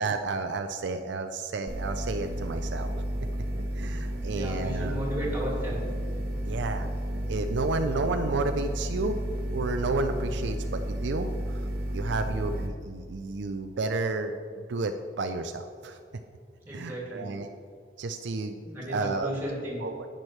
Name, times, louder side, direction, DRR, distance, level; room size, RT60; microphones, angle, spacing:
voice 1, 0.0-2.9 3.2-3.3 3.7-5.0 6.5-6.9 7.3-9.2 9.5-16.0 16.7-17.5 18.0-19.3 19.8-20.1, right 3 dB, 70° right, 7 dB, 0.4 m, -31 dB
sound 1, 1.7-12.7, right 1 dB, 50° right, 1.1 m, -32 dB
voice 2, 4.3-5.8 7.8-8.0 16.6-17.3 18.6-19.8, equal, 10° right, -4 dB, 2.4 m, -34 dB
10.5 x 8.9 x 3.2 m, 2.3 s
head